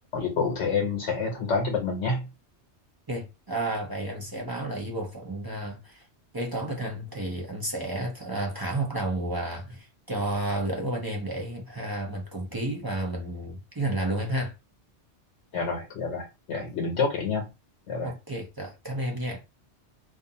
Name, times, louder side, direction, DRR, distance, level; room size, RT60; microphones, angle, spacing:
voice 1, 0.1-2.2 15.5-17.4 17.9-18.1, left 4 dB, 85° left, 1.0 m, -28 dB
voice 2, 3.1-6.0 6.3-14.5 18.0-19.4, right 1 dB, 30° right, 0.4 m, -31 dB
2.4 x 2.4 x 2.7 m
omnidirectional pair, 1.2 m